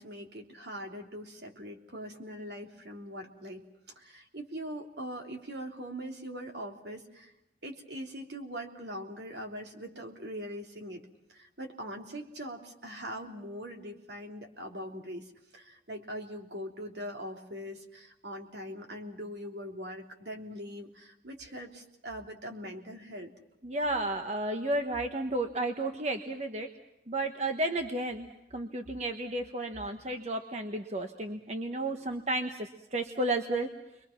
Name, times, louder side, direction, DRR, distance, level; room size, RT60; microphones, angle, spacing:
voice 1, 0.0-3.6 3.9-7.3 7.6-11.0 11.3-23.3, equal, 65° right, 2 dB, 3.3 m, -42 dB
voice 2, 23.6-26.7 27.1-33.7, right 2 dB, 35° right, 5 dB, 1.3 m, -32 dB
30.0 x 23.0 x 5.9 m, 0.89 s
head